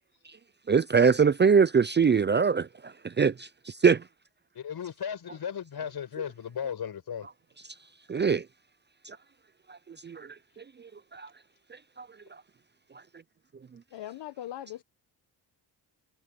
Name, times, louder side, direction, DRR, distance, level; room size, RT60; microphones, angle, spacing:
voice 1, 0.7-4.0 8.1-8.5 9.1-9.2 9.7-11.3 11.7-12.1, right 6 dB, 25° right, 0.5 m, -24 dB
voice 2, 4.5-7.3, left 8 dB, 65° left, 5.4 m, -36 dB
voice 3, 13.9-14.8, left 12 dB, 80° left, 1.1 m, -40 dB
cardioid pair, 80°, 42 cm